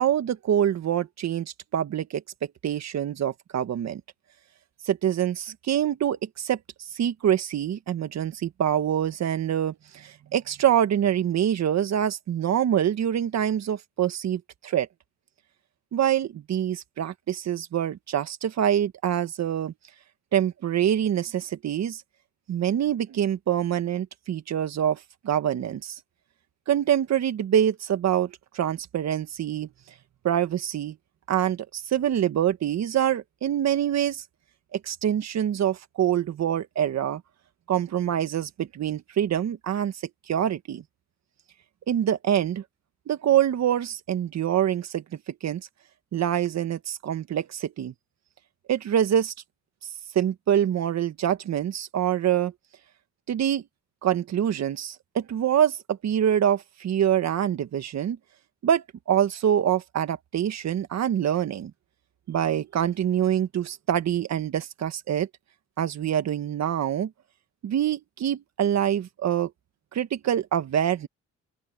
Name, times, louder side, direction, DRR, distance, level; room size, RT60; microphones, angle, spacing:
voice 1, 0.0-2.2 2.6-4.0 4.8-14.9 15.9-19.7 20.3-22.0 22.5-26.0 26.7-29.7 30.2-31.0 31.3-34.2 34.7-37.2 37.7-39.9 40.3-40.8 41.9-42.6 43.1-45.7 46.1-47.9 48.7-49.3 50.1-52.5 53.3-53.6 54.0-58.2 58.6-61.7 62.3-65.3 65.8-67.1 67.6-69.5 69.9-71.1, right 10 dB, 60° right, 1.7 m, -25 dB
open air
cardioid pair, 90°, 30 cm